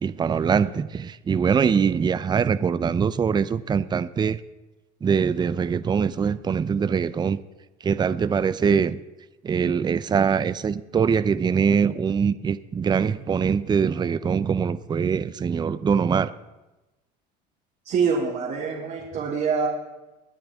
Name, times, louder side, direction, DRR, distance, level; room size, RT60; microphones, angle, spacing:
voice 1, 0.0-4.4 5.0-7.4 7.8-9.0 9.4-16.3, right 6 dB, 20° right, 15 dB, 0.5 m, -23 dB
voice 2, 17.8-19.7, right 5 dB, 50° right, -6 dB, 3.3 m, -25 dB
24.0 x 8.8 x 3.6 m, 1.1 s
supercardioid pair, 105°, 21 cm